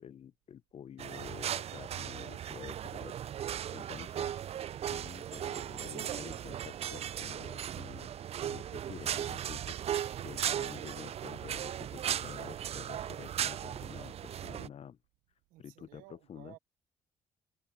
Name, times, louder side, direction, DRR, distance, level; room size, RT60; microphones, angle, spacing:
voice 1, 0.0-3.2 3.7-4.3 4.9-8.1 8.4-9.8 10.2-15.0 15.6-16.6, left 8 dB, 50° left, 0.6 m, -49 dB
sound 1, 1.0-14.7, right 10 dB, 50° right, 0.4 m, -37 dB
voice 2, 15.5-16.6, right 20 dB, 85° right, 0.8 m, -55 dB
supercardioid pair, 60°, 13 cm